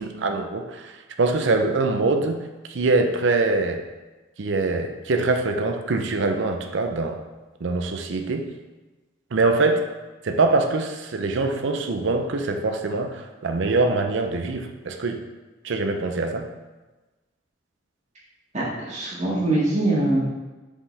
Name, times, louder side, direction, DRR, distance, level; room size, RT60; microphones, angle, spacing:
voice 1, 0.0-2.4 2.7-3.8 4.4-7.2 7.6-8.5 9.3-9.8 10.2-15.2 15.6-16.5, right 3 dB, 65° right, 5 dB, 0.6 m, -23 dB
voice 2, 18.5-20.2, right 2 dB, 35° right, -7 dB, 1.9 m, -23 dB
5.5 x 5.1 x 3.3 m, 1.2 s
head